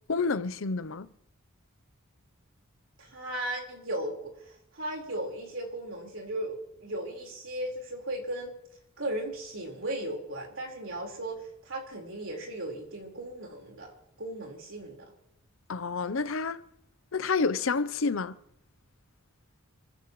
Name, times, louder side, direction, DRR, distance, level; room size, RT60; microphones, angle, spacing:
voice 1, 0.1-1.1 15.7-16.6 17.1-18.3, left 4 dB, 65° left, 0.7 m, -29 dB
voice 2, 3.0-8.5 9.0-13.9 14.2-15.1, right 1 dB, 65° right, 4.4 m, -36 dB
27.0 x 16.0 x 3.1 m
head